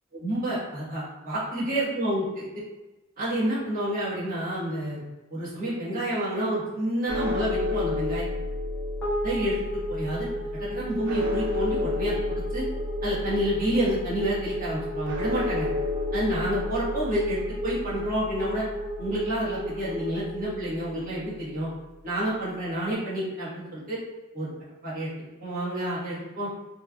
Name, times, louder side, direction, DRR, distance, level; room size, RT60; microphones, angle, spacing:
voice 1, 0.1-2.5 3.2-5.0 5.3-8.2 9.2-12.6 13.0-15.7 16.1-18.6 19.0-21.7 22.0-24.0 24.3-24.5 24.8-25.1 25.4-26.5, right 1 dB, 45° right, -9 dB, 1.2 m, -29 dB
sound 1, 7.1-21.3, left 2 dB, 60° right, 0.4 m, -32 dB
sound 2, 9.0-21.5, right 1 dB, 5° left, 0.8 m, -34 dB
3.1 x 2.4 x 2.3 m, 1.0 s
head